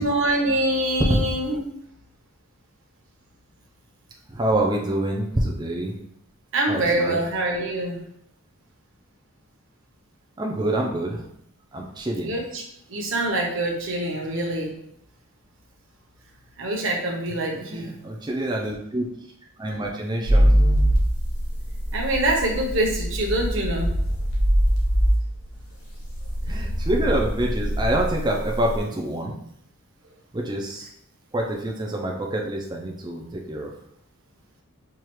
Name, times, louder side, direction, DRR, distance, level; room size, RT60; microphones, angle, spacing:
voice 1, 0.0-1.6 6.5-8.0 12.2-12.6 12.9-14.7 16.6-17.9 21.9-23.9, right 1 dB, 60° right, 0 dB, 0.8 m, -25 dB
voice 2, 4.3-5.9 6.7-7.2 10.4-11.3 11.7-12.3 17.6-19.0 19.6-20.5 26.5-29.4 30.3-30.9 31.3-33.7, right 1 dB, 20° right, -1 dB, 0.4 m, -26 dB
sound 1, 20.2-28.8, equal, 90° left, 1.0 m, -22 dB
4.7 x 2.4 x 3.0 m, 0.74 s
head